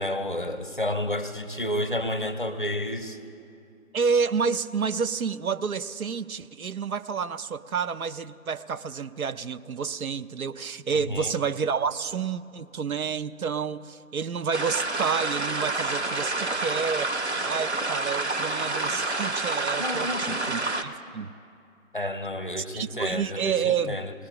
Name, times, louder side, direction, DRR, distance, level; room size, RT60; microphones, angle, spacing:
voice 1, 0.0-3.2 10.9-11.3 19.8-20.6 21.9-24.1, left 1 dB, 35° left, 9 dB, 0.6 m, -31 dB
voice 2, 3.9-21.3 22.6-24.0, right 6 dB, 85° right, 13 dB, 0.6 m, -29 dB
sound 1, 14.5-20.8, right 2 dB, 50° right, 0.8 m, -28 dB
20.0 x 17.5 x 2.9 m, 2.5 s
figure-of-eight pair, 170°, 41 cm